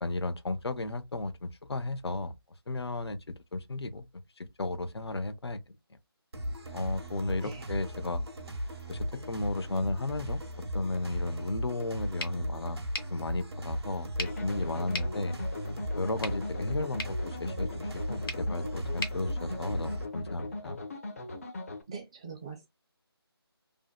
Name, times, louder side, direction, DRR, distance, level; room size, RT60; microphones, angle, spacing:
voice 1, 0.0-2.3 2.7-4.1 4.4-5.6 6.7-8.2 8.9-10.4 10.7-12.8 13.1-15.4 16.0-20.8, left 2 dB, 80° left, 0.5 m, -34 dB
sound 1, 6.3-20.1, equal, 75° right, 0.8 m, -37 dB
sound 2, 12.2-20.2, left 2 dB, 55° left, 1.0 m, -43 dB
sound 3, 14.2-21.8, left 2 dB, 35° left, 0.5 m, -40 dB
voice 2, 21.9-22.7, right 5 dB, 15° right, 0.4 m, -42 dB
2.6 x 2.1 x 2.3 m
figure-of-eight pair, 160°, 14 cm